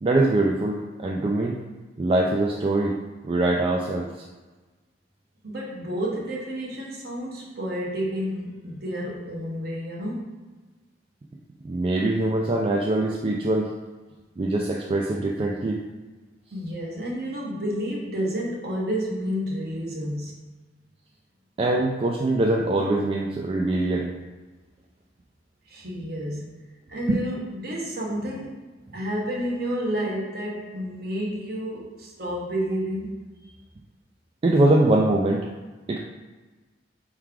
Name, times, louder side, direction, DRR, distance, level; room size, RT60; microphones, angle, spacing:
voice 1, 0.0-1.6 2.0-3.0 3.2-4.1 11.6-13.7 14.4-15.8 21.6-24.1 27.1-27.2 34.4-35.5 35.9-36.0, right 2 dB, 30° right, -2 dB, 0.3 m, -23 dB
voice 2, 5.4-10.4 16.5-20.3 25.7-26.6 26.9-28.6 28.9-33.5, equal, 55° right, -3 dB, 1.1 m, -30 dB
4.7 x 3.1 x 3.6 m, 1.3 s
head